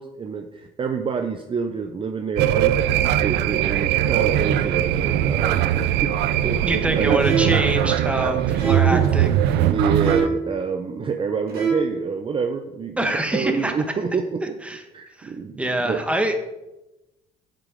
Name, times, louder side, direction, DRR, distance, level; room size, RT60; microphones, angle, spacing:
voice 1, 0.0-2.8 3.2-6.1 6.4-7.2 8.0-9.1 9.4-14.6 14.9-16.0, right 5 dB, 30° right, 6 dB, 0.6 m, -28 dB
sound 1, 2.4-10.3, right 11 dB, 90° right, 0.5 m, -21 dB
voice 2, 6.6-9.6 13.0-13.7 14.7-14.8 15.2-15.3 15.6-16.4, right 1 dB, 5° right, 5 dB, 1.3 m, -25 dB
sound 2, 7.2-7.7 8.6-9.0 10.0-10.5 11.5-12.0, right 5 dB, 65° right, 3.6 m, -25 dB
8.0 x 7.7 x 5.1 m, 0.98 s
cardioid pair, 110°, 17 cm